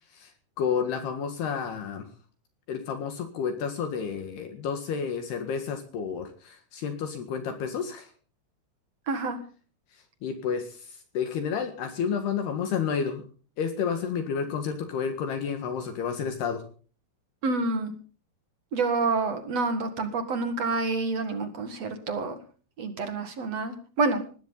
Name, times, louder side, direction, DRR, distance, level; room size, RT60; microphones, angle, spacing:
voice 1, 0.6-2.1 2.7-8.1 10.2-13.2 13.6-16.6, left 6 dB, 65° left, 7 dB, 3.4 m, -30 dB
voice 2, 9.1-9.4 17.4-17.9 18.7-22.4 22.8-24.4, right 3 dB, 55° right, 9 dB, 1.9 m, -28 dB
20.0 x 16.0 x 4.0 m, 0.39 s
omnidirectional pair, 5.6 m